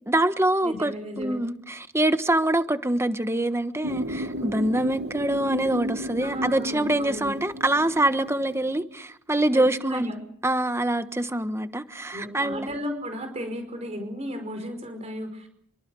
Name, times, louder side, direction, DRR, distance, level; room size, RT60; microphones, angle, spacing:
voice 1, 0.1-10.1 10.4-12.7, right 1 dB, 10° right, 1.3 m, -25 dB
voice 2, 0.6-1.4 6.2-7.3 9.5-9.6 9.9-10.2 12.1-15.5, equal, 30° right, 5.2 m, -34 dB
sound 1, 3.8-8.8, equal, 50° right, 1.8 m, -34 dB
27.0 x 24.5 x 6.4 m
head